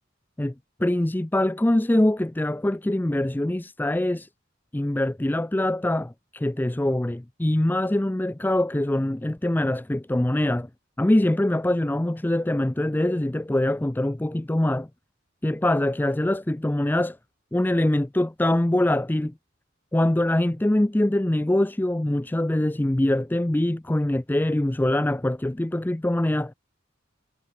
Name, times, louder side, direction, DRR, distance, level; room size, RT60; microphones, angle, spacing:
voice 1, 0.8-4.3 4.7-10.7 11.0-14.9 15.4-17.2 17.5-19.3 19.9-26.5, left 1 dB, 10° left, 0.4 m, -23 dB
head